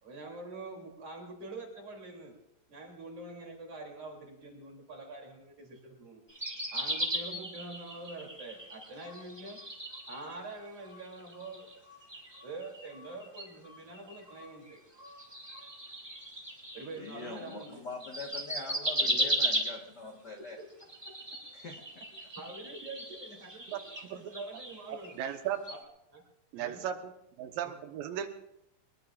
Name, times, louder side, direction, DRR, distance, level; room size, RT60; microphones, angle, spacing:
voice 1, 0.0-2.3 2.7-6.2 6.7-9.6 10.1-11.7 12.4-14.8 16.7-17.8 19.0-19.4 20.4-20.7 21.1-21.2 22.2-23.7 24.1-25.2 25.7-25.8 26.1-26.2 26.5-26.8, right 2 dB, 45° right, 1 dB, 3.9 m, -45 dB
sound 1, 6.3-10.5 10.8-17.7 18.0-20.1 20.7-25.4 25.6-25.8, right 1 dB, 10° right, 2.0 m, -37 dB
voice 2, 16.9-20.6 21.5-21.8, left 3 dB, 55° left, 2 dB, 1.1 m, -43 dB
voice 3, 23.7-24.3 24.9-25.6 26.5-27.1 27.4-28.3, right 10 dB, 80° right, 6 dB, 2.7 m, -36 dB
22.5 x 21.0 x 2.5 m, 0.81 s
omnidirectional pair, 4.1 m